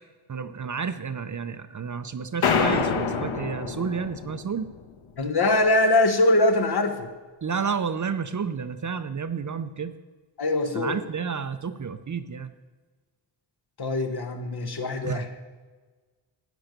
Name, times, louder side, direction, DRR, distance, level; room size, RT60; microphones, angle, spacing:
voice 1, 0.3-4.7 7.4-9.9 10.7-12.5 15.0-15.3, right 6 dB, 40° right, 11 dB, 0.7 m, -30 dB
sound 1, 2.4-4.8, left 6 dB, 85° left, 1.5 m, -26 dB
voice 2, 5.2-7.1 10.4-10.9 13.8-15.3, left 2 dB, 50° left, 6 dB, 1.7 m, -22 dB
15.5 x 10.0 x 6.7 m, 1.4 s
wide cardioid pair, 160°, 47 cm